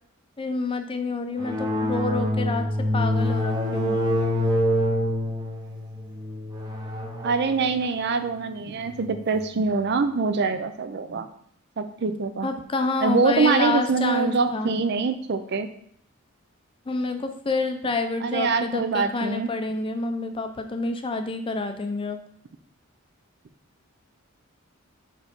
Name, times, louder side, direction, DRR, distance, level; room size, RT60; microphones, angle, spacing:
voice 1, 0.4-4.0 12.4-14.8 16.9-22.2, left 3 dB, 25° left, 7 dB, 0.5 m, -28 dB
sound 1, 1.4-9.5, left 1 dB, 20° right, 0.8 m, -26 dB
voice 2, 7.2-11.3 11.8-12.5 13.0-15.7 18.2-19.5, right 4 dB, 50° right, 10 dB, 0.5 m, -24 dB
4.5 x 4.5 x 5.2 m, 0.65 s
head